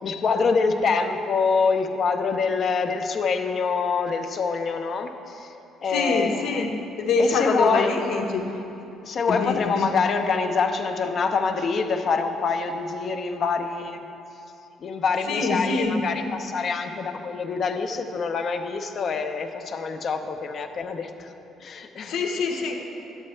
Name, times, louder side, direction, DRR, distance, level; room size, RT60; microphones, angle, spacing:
voice 1, 0.0-5.5 5.8-6.7 7.2-7.9 9.0-14.0 14.8-21.3 21.6-22.1, left 5 dB, 50° left, 6 dB, 0.6 m, -25 dB
voice 2, 5.9-6.7 7.0-8.5 9.3-9.9 15.3-16.0 22.0-22.8, left 4 dB, 75° left, 3 dB, 0.9 m, -24 dB
10.5 x 8.2 x 3.3 m, 2.9 s
cardioid pair, 110°, 0 cm